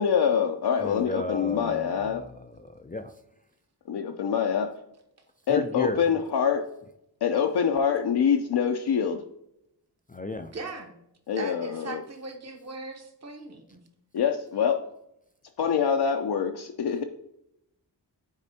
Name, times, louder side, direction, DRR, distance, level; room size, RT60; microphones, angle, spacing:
voice 1, 0.0-2.2 3.9-4.7 5.5-6.6 7.2-9.2 11.3-12.0 14.1-14.8 15.6-17.0, left 7 dB, 65° left, 3 dB, 0.6 m, -25 dB
voice 2, 0.8-3.1 5.5-6.0 10.1-10.5, left 2 dB, 20° left, 7 dB, 0.4 m, -34 dB
voice 3, 10.5-10.9 11.3-13.8, right 3 dB, 40° right, 3 dB, 1.1 m, -39 dB
9.7 x 4.1 x 2.8 m, 0.80 s
wide cardioid pair, 90°, 42 cm